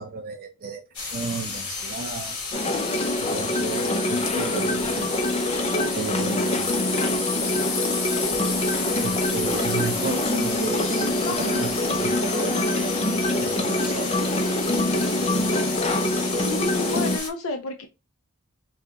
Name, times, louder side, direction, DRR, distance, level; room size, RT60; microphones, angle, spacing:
voice 1, 0.0-2.4 3.2-5.1 5.9-6.7 8.9-14.3, right 4 dB, 45° right, 0.6 m, -34 dB
sound 1, 0.9-17.3, left 4 dB, 90° left, 1.4 m, -31 dB
sound 2, 2.5-17.2, left 1 dB, 30° left, 0.5 m, -25 dB
voice 2, 16.4-17.9, left 3 dB, 65° left, 0.7 m, -30 dB
5.9 x 2.3 x 2.9 m
head